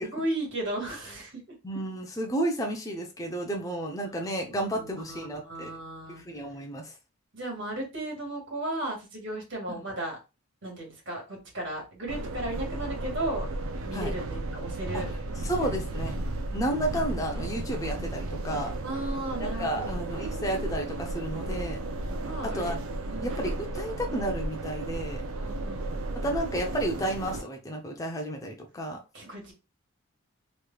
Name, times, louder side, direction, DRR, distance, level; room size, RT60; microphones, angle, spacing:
voice 1, 0.0-1.6 4.7-6.2 7.3-10.2 10.6-13.5 13.8-15.1 15.4-16.1 18.8-20.4 22.3-22.7 23.1-23.5 25.3-26.1 29.1-29.5, right 1 dB, 60° right, 1.8 m, -35 dB
voice 2, 1.6-5.7 6.1-6.9 9.7-9.8 13.9-14.1 14.9-15.0 15.4-16.2 16.5-18.7 19.4-21.8 22.5-22.8 23.2-25.2 26.1-29.0, right 1 dB, 15° left, 0.5 m, -32 dB
sound 1, 12.1-27.4, right 2 dB, 75° right, 0.5 m, -34 dB
3.3 x 3.1 x 2.3 m
head